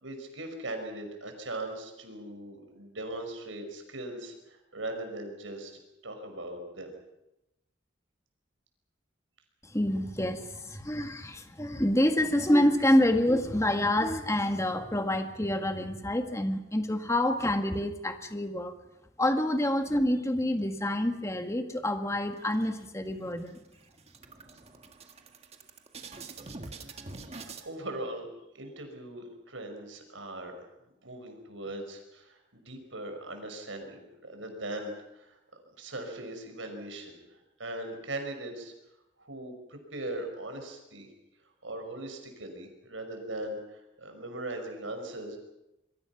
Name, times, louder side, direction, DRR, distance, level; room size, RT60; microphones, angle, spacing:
voice 1, 0.0-6.9 27.7-28.3 28.5-30.5 31.0-35.4 35.8-38.7 39.2-41.1 41.6-45.4, right 1 dB, 85° right, 5 dB, 5.3 m, -39 dB
voice 2, 9.7-18.7 19.2-23.6, left 1 dB, 15° left, 6 dB, 1.6 m, -27 dB
sound 1, 22.3-23.1 23.5-23.6 23.9-27.7, right 3 dB, 35° right, 1.7 m, -45 dB
26.5 x 23.0 x 5.9 m, 0.91 s
head